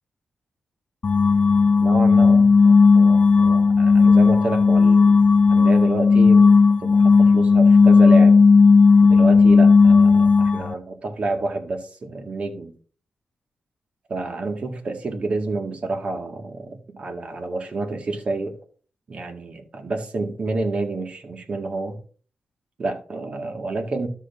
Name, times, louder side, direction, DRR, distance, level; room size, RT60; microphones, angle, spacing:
sound 1, 1.0-10.7, left 4 dB, 50° left, 0.4 m, -14 dB
voice 1, 1.8-5.2 5.5-8.3 9.0-12.7 14.1-18.5 19.1-22.0 22.8-24.1, right 3 dB, 50° right, 1.9 m, -29 dB
12.5 x 6.4 x 2.7 m
cardioid pair, 80°, 3 cm